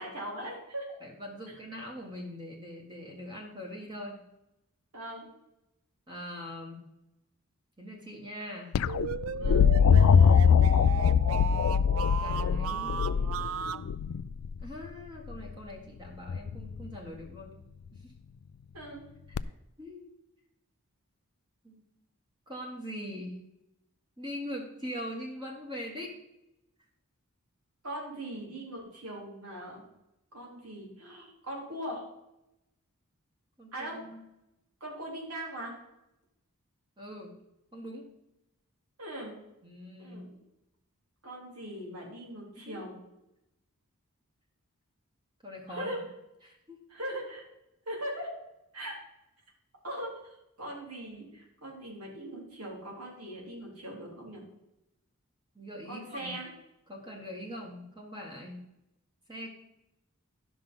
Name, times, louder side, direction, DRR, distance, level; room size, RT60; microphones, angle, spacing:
voice 1, 0.0-0.9 4.9-5.3 9.4-9.6 13.1-13.4 18.7-19.1 27.8-29.8 30.3-32.0 33.7-34.0 34.8-35.7 39.0-39.3 40.0-40.4 41.2-43.0 45.7-46.0 46.9-47.5 47.9-48.3 48.7-49.0 49.8-54.4 55.9-56.5, right 1 dB, 85° right, -2 dB, 3.8 m, -40 dB
voice 2, 1.0-4.2 6.1-6.9 7.8-8.8 12.2-13.1 14.6-17.6 17.9-18.1 19.3-19.4 19.8-20.1 21.6-21.8 22.5-23.4 24.2-26.2 33.6-34.2 37.0-37.4 37.7-38.1 39.6-40.3 42.7-42.8 45.4-46.0 46.4-46.8 55.5-56.4 56.9-58.6 59.3-59.5, equal, 20° right, -1 dB, 1.5 m, -42 dB
sound 1, 8.7-14.7 16.3-16.8 19.4-19.5, left 7 dB, 75° left, 0.3 m, -23 dB
sound 2, 8.9-13.9, right 7 dB, 70° right, 0.4 m, -35 dB
11.5 x 5.9 x 5.5 m, 0.89 s
head